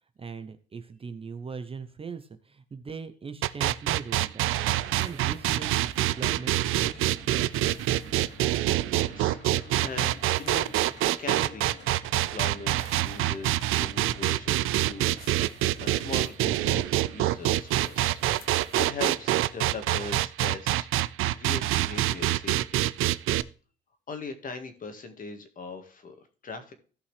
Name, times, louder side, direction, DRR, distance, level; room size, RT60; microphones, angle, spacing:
voice 1, 0.2-7.2, right 5 dB, 25° right, 10 dB, 0.7 m, -40 dB
sound 1, 3.4-23.4, right 15 dB, 75° right, 0.5 m, -26 dB
sound 2, 4.5-19.8, left 2 dB, 55° left, 2.6 m, -50 dB
sound 3, 4.9-6.1 7.0-8.6 9.8-11.4 12.7-13.9 15.0-16.4 17.4-18.8, left 6 dB, 75° left, 1.9 m, -56 dB
voice 2, 8.9-10.7 11.2-11.7 12.0-15.5 15.8-20.9 21.3-22.8 24.1-26.7, left 4 dB, 40° left, 7 dB, 1.8 m, -40 dB
15.5 x 5.6 x 3.3 m, 0.38 s
cardioid pair, 115°, 21 cm